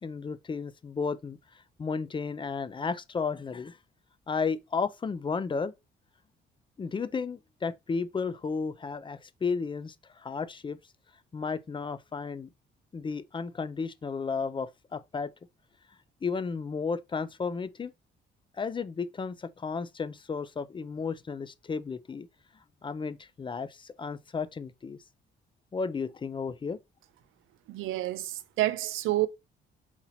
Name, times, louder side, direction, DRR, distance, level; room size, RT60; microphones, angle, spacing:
voice 1, 0.0-3.8 4.3-5.7 6.8-10.8 11.3-12.5 12.9-15.3 16.2-17.9 18.6-22.3 22.8-25.0 25.7-26.8, left 5 dB, 25° left, 0.4 m, -33 dB
voice 2, 27.7-29.3, right 16 dB, 90° right, 0.5 m, -29 dB
4.1 x 2.8 x 4.2 m
cardioid pair, 90°, 20 cm